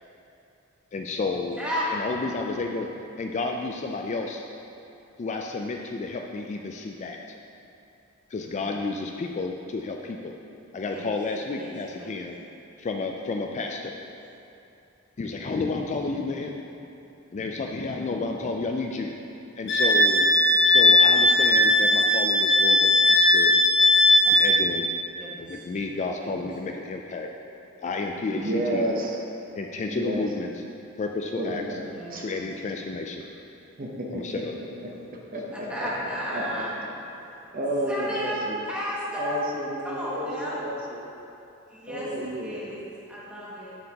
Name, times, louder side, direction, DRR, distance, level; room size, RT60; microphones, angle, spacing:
voice 1, 0.9-1.6 1.9-2.9 3.2-4.4 5.2-7.2 8.3-10.3 10.7-12.3 12.8-13.9 15.2-16.5 17.3-19.1 19.6-20.3 20.6-23.5 24.3-24.9 25.4-27.3 27.8-28.9 29.6-30.5 31.0-31.6 32.2-33.2 34.1-34.5, left 3 dB, 35° left, 2 dB, 0.3 m, -31 dB
voice 2, 8.5-8.8 10.9-11.1 11.6-12.2 16.0-16.5 25.2-25.6 26.2-26.4 31.9-32.4 35.5-36.7 37.9-39.4 39.8-40.6 41.7-42.8 43.1-43.8, equal, 5° right, -7 dB, 1.3 m, -34 dB
Wind instrument woodwind instrument, 19.7-24.6, left 1 dB, 55° left, 0.8 m, -18 dB
voice 3, 28.3-29.2 29.9-30.2 31.4-31.8 32.1-32.3 33.8-34.2 34.8-34.9 35.3-35.9 36.3-36.5 37.2-38.6 39.1-41.0 41.9-42.6, right 1 dB, 45° right, -2 dB, 0.8 m, -31 dB
7.6 x 7.2 x 2.9 m, 2.7 s
head